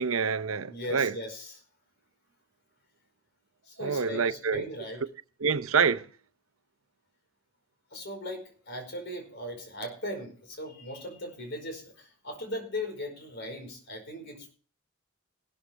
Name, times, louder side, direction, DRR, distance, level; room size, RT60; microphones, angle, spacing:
voice 1, 0.0-1.1 3.8-4.6 5.4-6.1, right 6 dB, 80° right, 0.8 m, -27 dB
voice 2, 0.7-1.6 3.6-5.1 7.9-14.5, left 1 dB, 55° left, 4.9 m, -38 dB
17.0 x 13.0 x 3.4 m
head